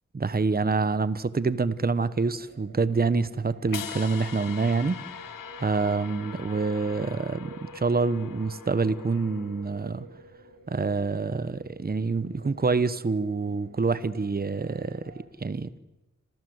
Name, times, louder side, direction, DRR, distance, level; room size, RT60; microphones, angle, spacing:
voice 1, 0.1-5.0 5.6-10.0 10.7-15.1 15.4-15.7, right 4 dB, 30° right, 1.2 m, -26 dB
sound 1, 1.5-15.3, right 3 dB, 80° right, 7.4 m, -51 dB
sound 2, 3.7-9.9, left 9 dB, 85° left, 1.0 m, -42 dB
27.5 x 27.0 x 8.0 m
wide cardioid pair, 110°, 32 cm